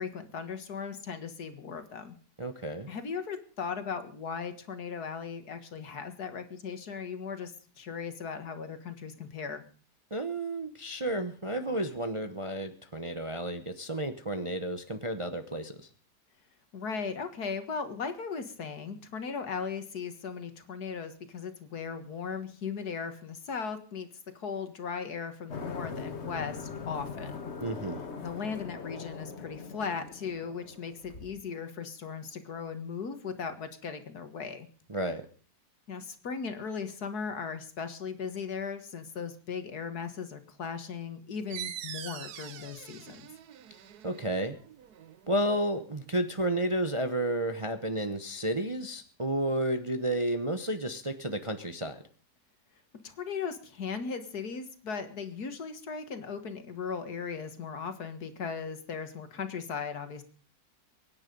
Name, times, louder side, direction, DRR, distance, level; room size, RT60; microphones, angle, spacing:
voice 1, 0.0-2.2 2.9-9.6 16.7-24.1 24.4-27.4 28.2-34.7 35.9-43.3 53.0-60.2, left 6 dB, 65° left, 9 dB, 2.1 m, -37 dB
voice 2, 2.4-2.9 10.1-15.9 27.6-28.0 34.9-35.2 44.0-44.6 45.3-52.0, right 1 dB, 25° right, 8 dB, 0.8 m, -31 dB
sound 1, 25.5-31.3, left 5 dB, 40° left, 1.6 m, -41 dB
sound 2, 41.5-46.8, right 10 dB, 70° right, 1.4 m, -45 dB
23.5 x 9.9 x 5.3 m, 0.41 s
omnidirectional pair, 1.8 m